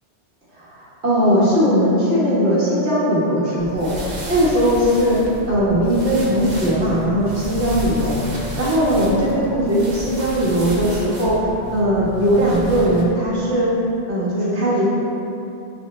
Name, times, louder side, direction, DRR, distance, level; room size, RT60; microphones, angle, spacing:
voice 1, 0.7-3.9 4.3-5.2 5.5-8.2 8.6-11.4 11.7-13.7 14.1-14.9, equal, 75° right, -8 dB, 1.8 m, -19 dB
sound 1, 3.6-13.0, right 1 dB, 40° right, 1.1 m, -32 dB
7.8 x 7.8 x 3.2 m, 2.8 s
omnidirectional pair, 1.1 m